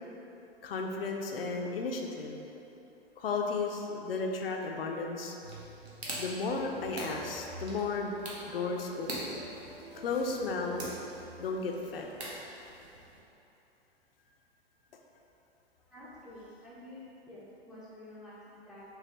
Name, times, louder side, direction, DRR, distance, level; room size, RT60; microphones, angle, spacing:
voice 1, 0.6-2.4 3.2-5.4 6.2-8.1 8.4-9.4 9.9-10.8 11.4-12.1, left 4 dB, 65° left, 1 dB, 0.5 m, -34 dB
sound 1, 5.4-13.2, right 1 dB, 75° right, 0.9 m, -44 dB
sound 2, 6.0-12.1, right 1 dB, 30° right, 0.9 m, -53 dB
voice 2, 15.9-18.8, left 1 dB, ahead, -10 dB, 0.4 m, -49 dB
4.6 x 2.9 x 3.0 m, 3.0 s
figure-of-eight pair, 100°, 32 cm